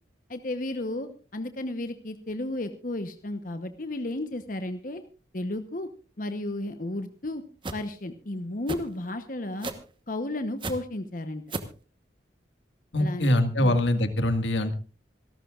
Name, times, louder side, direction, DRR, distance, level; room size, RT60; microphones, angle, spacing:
voice 1, 0.3-5.0 5.3-5.9 6.2-7.4 7.7-9.7 10.1-11.4 13.0-13.8, left 1 dB, 45° left, 9 dB, 1.0 m, -33 dB
sound 1, 7.6-7.8 8.7-8.9 9.6-9.9 10.6-10.8 11.5-11.8, right 2 dB, 25° right, 1.1 m, -32 dB
voice 2, 12.9-14.7, left 1 dB, 85° left, 8 dB, 1.8 m, -23 dB
26.5 x 12.5 x 2.5 m, 0.34 s
head